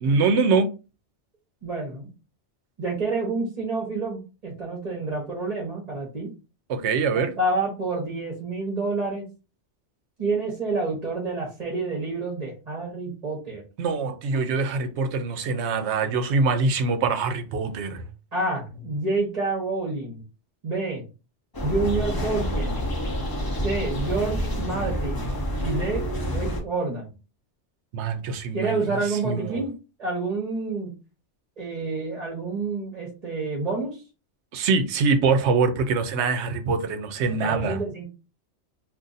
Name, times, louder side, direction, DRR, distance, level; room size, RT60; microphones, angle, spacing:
voice 1, 0.0-0.7 6.7-7.3 13.8-18.1 27.9-29.6 34.5-37.8, right 4 dB, 70° right, 0.9 m, -24 dB
voice 2, 1.6-2.1 2.8-6.3 7.1-9.3 10.2-13.6 18.3-20.2 20.6-21.0 21.6-22.8 23.6-25.3 25.6-27.1 28.5-29.7 30.0-30.9 31.6-34.0 37.3-38.0, right 3 dB, 35° right, 0.9 m, -28 dB
sound 1, 21.5-26.6, equal, 25° left, 0.6 m, -28 dB
2.5 x 2.5 x 3.9 m
omnidirectional pair, 1.2 m